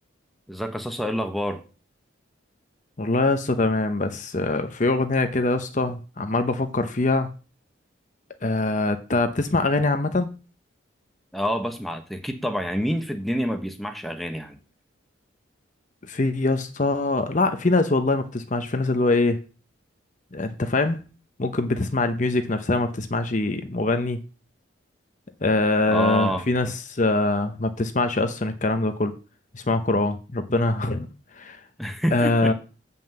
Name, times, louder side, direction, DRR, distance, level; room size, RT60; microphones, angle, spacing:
voice 1, 0.5-1.6 11.3-14.6 25.9-26.4 31.8-32.5, equal, ahead, 1.0 m, -27 dB
voice 2, 3.0-7.3 8.4-10.3 16.0-19.4 20.3-21.0 21.4-24.2 25.4-29.2 29.5-31.1 31.3-31.6 32.1-32.5, left 2 dB, 40° left, 0.8 m, -23 dB
7.6 x 5.5 x 7.6 m
head